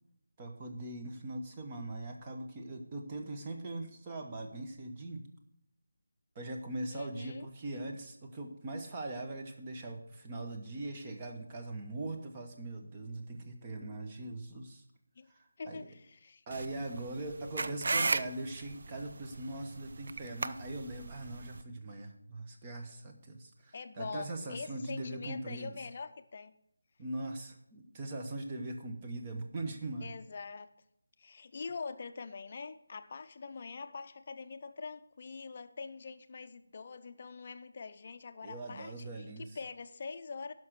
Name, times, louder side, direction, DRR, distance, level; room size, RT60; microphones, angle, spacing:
voice 1, 0.4-5.3 6.3-14.8 15.3-15.9 16.5-25.7 27.0-30.2 38.4-39.6, right 2 dB, 20° right, 3 dB, 1.0 m, -41 dB
voice 2, 6.9-7.5 15.2-15.3 15.6-16.4 23.7-26.6 30.0-30.7 31.2-39.1 39.6-40.5, left 4 dB, 35° left, 9 dB, 0.7 m, -44 dB
sound 1, 16.5-21.6, right 3 dB, 50° right, 0.4 m, -36 dB
10.5 x 6.1 x 6.5 m, 0.75 s
figure-of-eight pair, 175°, 0 cm